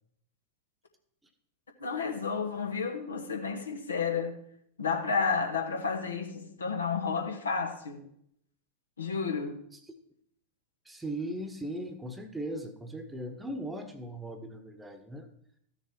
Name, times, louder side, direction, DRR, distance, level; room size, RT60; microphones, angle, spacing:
voice 1, 1.8-4.4 4.8-8.0 9.0-9.6, left 5 dB, 75° left, 1.4 m, -31 dB
voice 2, 10.8-15.3, right 1 dB, 10° right, 1.2 m, -38 dB
14.0 x 6.8 x 4.4 m
figure-of-eight pair, 90°, 0 cm